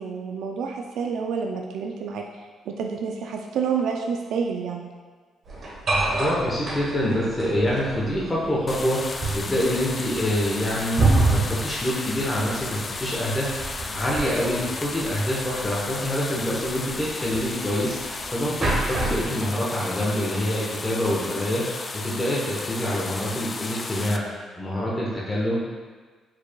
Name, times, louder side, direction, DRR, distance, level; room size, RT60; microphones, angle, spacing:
voice 1, 0.0-2.2 2.7-4.9, right 6 dB, 75° right, 2 dB, 0.3 m, -28 dB
sound 1, 5.4-19.3, right 2 dB, 50° right, 1.2 m, -28 dB
voice 2, 5.9-25.8, equal, 15° left, -6 dB, 1.0 m, -26 dB
sound 2, 8.7-24.2, left 3 dB, 35° left, 0.3 m, -34 dB
4.7 x 4.6 x 2.2 m, 1.4 s
cardioid pair, 90°, 0 cm